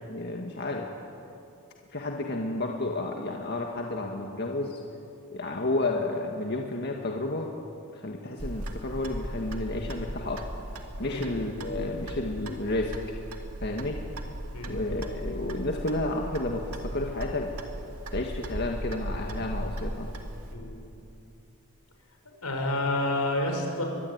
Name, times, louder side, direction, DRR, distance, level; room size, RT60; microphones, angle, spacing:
voice 1, 0.1-0.9 1.9-4.8 5.3-7.5 7.9-10.4 11.0-12.9 13.6-14.0 14.7-17.5 18.1-20.1, left 2 dB, 50° left, 1 dB, 1.9 m, -31 dB
Clock, 8.4-20.5, right 1 dB, 85° right, 2.6 m, -37 dB
voice 2, 11.0-11.3 14.5-14.8 20.5-20.8 22.4-23.8, left 1 dB, 85° left, 3 dB, 6.0 m, -29 dB
24.5 x 22.0 x 9.7 m, 2.7 s
head